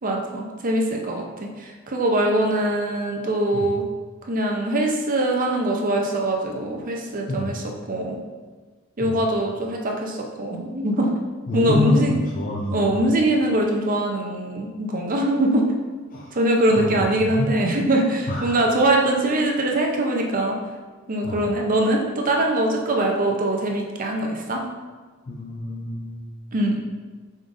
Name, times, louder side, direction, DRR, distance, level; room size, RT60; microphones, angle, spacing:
voice 1, 0.0-3.8 4.3-7.6 7.9-8.2 9.0-11.1 11.5-12.2 12.7-15.7 16.3-20.6 21.1-24.6 26.5-26.8, right 1 dB, 40° right, 1 dB, 0.6 m, -22 dB
voice 2, 11.5-13.0 16.1-16.4 16.7-17.5 18.3-18.6 21.2-21.5 25.3-26.3, left 2 dB, 40° left, -3 dB, 0.4 m, -27 dB
5.0 x 3.9 x 2.5 m, 1.4 s
head